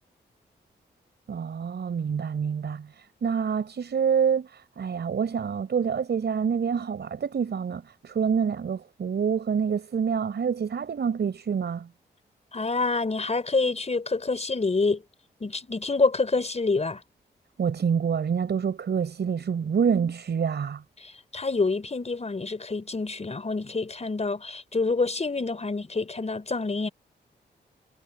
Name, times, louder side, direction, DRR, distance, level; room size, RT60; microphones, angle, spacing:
voice 1, 1.3-11.9 17.6-20.8, right 7 dB, 70° right, 4.9 m, -27 dB
voice 2, 12.5-15.0 15.4-17.0 21.0-26.9, left 3 dB, 35° left, 4.6 m, -27 dB
cardioid pair, 60°, 18 cm